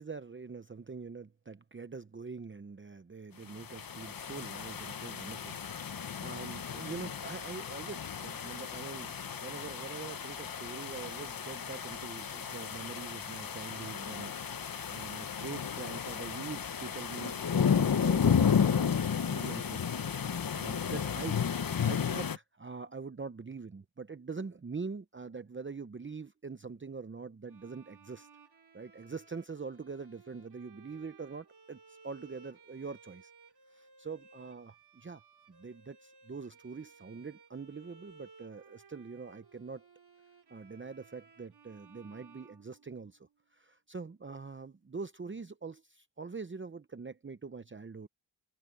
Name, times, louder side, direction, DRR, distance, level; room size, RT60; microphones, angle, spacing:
voice 1, 0.0-14.3 14.9-21.4 21.8-28.3 28.7-33.3 33.7-35.2 35.5-39.9 40.5-48.1, right 4 dB, 30° right, 0.8 m, -44 dB
sound 1, 3.5-22.4, left 7 dB, 55° left, 1.0 m, -33 dB
Bowed string instrument, 27.5-43.3, right 5 dB, 65° right, 3.3 m, -59 dB
cardioid pair, 60°, 41 cm